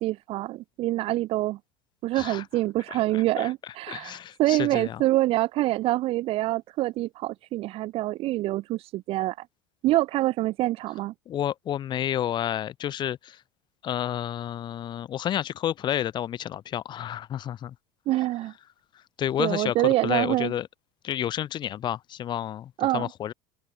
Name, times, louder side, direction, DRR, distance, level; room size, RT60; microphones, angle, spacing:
voice 1, 0.0-1.6 2.0-9.4 9.8-11.1 18.1-18.5 19.4-20.5 22.8-23.1, right 17 dB, 50° right, 1.1 m, -26 dB
voice 2, 2.1-2.4 2.9-3.5 3.9-5.0 11.3-13.4 13.8-17.7 19.2-20.7 21.0-23.3, left 11 dB, 35° left, 2.1 m, -30 dB
open air
supercardioid pair, 120°, 13 cm